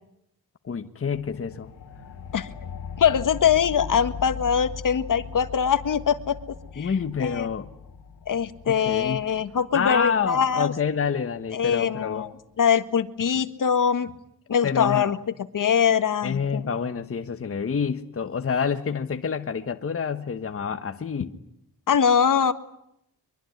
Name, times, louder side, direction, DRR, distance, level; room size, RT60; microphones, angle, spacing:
voice 1, 0.6-1.7 6.8-7.7 8.7-9.2 9.7-12.3 14.6-15.1 16.2-21.3, left 6 dB, 35° left, 9 dB, 1.4 m, -27 dB
sound 1, 1.1-12.2, left 6 dB, 90° left, 2.9 m, -40 dB
voice 2, 3.0-6.4 6.7-6.9 7.2-7.5 8.3-10.7 11.5-12.3 12.6-14.1 14.5-15.2 15.5-16.7 21.9-22.5, left 7 dB, 60° left, 12 dB, 1.6 m, -22 dB
24.0 x 23.5 x 9.5 m, 0.77 s
wide cardioid pair, 125°, 37 cm